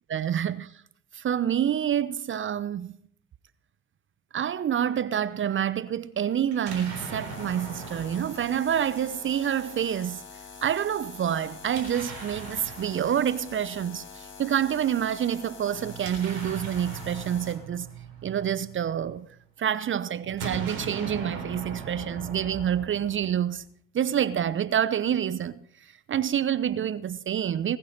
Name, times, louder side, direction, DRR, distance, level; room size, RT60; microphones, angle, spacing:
voice 1, 0.1-0.8 1.1-3.0 4.3-10.2 10.6-17.9 18.2-19.3 19.6-23.6 23.9-27.8, right 9 dB, 40° right, 0.8 m, -27 dB
Explosion, 6.5-9.5 11.6-13.8 15.7-19.2 20.2-23.6, right 5 dB, 75° right, 3.9 m, -40 dB
sound 1, 6.7-17.5, left 5 dB, 40° left, 5.8 m, -45 dB
20.0 x 8.9 x 5.7 m
figure-of-eight pair, 45°, 32 cm